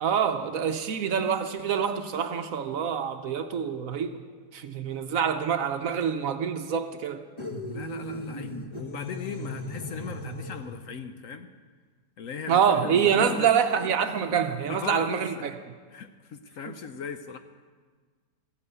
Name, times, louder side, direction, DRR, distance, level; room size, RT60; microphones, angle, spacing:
voice 1, 0.0-4.2 4.5-7.2 12.5-15.5 16.7-16.8, right 7 dB, 65° right, 8 dB, 1.0 m, -26 dB
sound 1, 7.4-10.9, equal, 20° left, 0.9 m, -37 dB
voice 2, 7.7-11.5 12.2-13.5 14.7-15.5 15.9-17.4, left 6 dB, 65° left, 9 dB, 0.9 m, -38 dB
14.5 x 9.0 x 8.1 m, 1.5 s
omnidirectional pair, 1.7 m